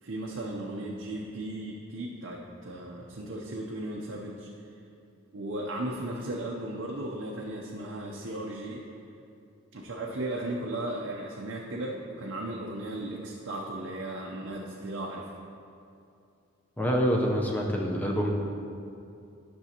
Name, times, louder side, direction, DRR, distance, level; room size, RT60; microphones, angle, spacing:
voice 1, 0.0-4.5 5.3-8.9 9.7-15.3, right 1 dB, 55° right, -2 dB, 0.6 m, -36 dB
voice 2, 16.8-18.3, equal, 10° left, -1 dB, 0.6 m, -26 dB
10.5 x 6.2 x 2.9 m, 2.6 s
head